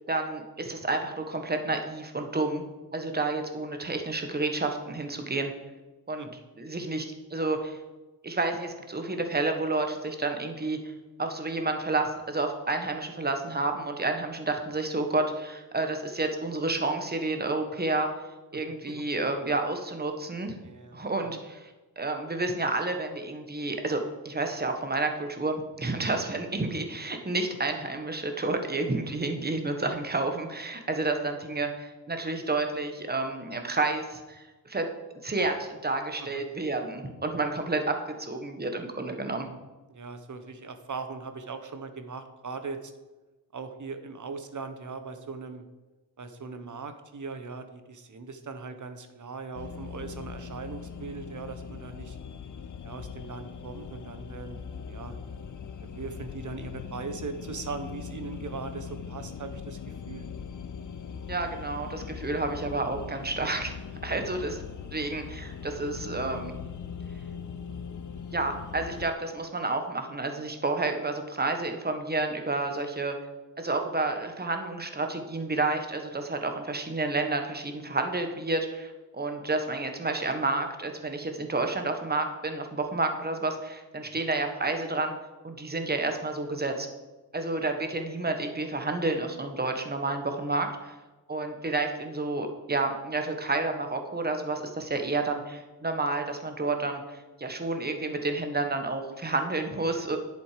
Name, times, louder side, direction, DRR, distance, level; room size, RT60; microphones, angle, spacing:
voice 1, 0.1-2.6 2.9-5.5 6.1-6.3 6.6-7.8 8.2-10.8 11.2-18.1 18.5-20.6 20.9-21.7 22.0-34.8 35.2-39.5 61.3-63.7 64.0-64.6 64.9-66.5 68.3-73.1 73.6-85.1 85.4-86.9 87.3-90.9 91.3-100.2, right 2 dB, 25° right, 5 dB, 1.3 m, -30 dB
voice 2, 18.9-19.3 20.6-21.0 21.3-21.4 36.2-36.4 39.9-42.9 43.5-45.6 46.2-52.2 52.8-54.6 54.9-55.2 55.8-60.3 64.1-64.2 84.1-84.2, right 4 dB, 50° right, 8 dB, 1.1 m, -40 dB
sound 1, 49.5-69.1, left 6 dB, 50° left, 0.8 m, -40 dB
10.5 x 8.0 x 5.1 m, 1.1 s
wide cardioid pair, 130°, 38 cm